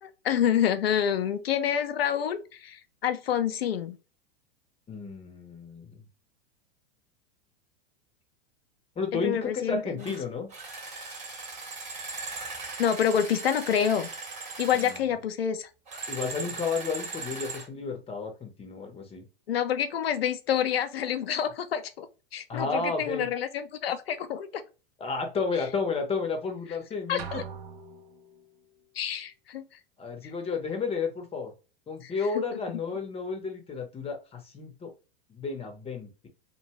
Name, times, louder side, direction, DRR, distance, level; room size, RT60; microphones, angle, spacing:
voice 1, 0.0-4.0 9.1-9.8 10.1-10.2 12.8-14.1 14.6-15.7 19.5-22.1 22.3-24.6 27.1-27.4 29.0-29.6 32.0-32.1, left 9 dB, 90° left, 0.5 m, -27 dB
voice 2, 4.9-6.0 9.0-10.5 14.7-15.0 16.1-19.2 22.5-23.3 25.0-27.4 30.0-31.5 31.9-34.9 35.3-36.3, left 4 dB, 20° left, 0.7 m, -32 dB
sound 1, 10.0-10.2 10.5-15.0 15.9-17.7, right 4 dB, 25° right, 1.1 m, -38 dB
sound 2, 27.2-28.6, right 6 dB, 65° right, 0.6 m, -42 dB
2.6 x 2.2 x 2.9 m
hypercardioid pair, 100°, 29 cm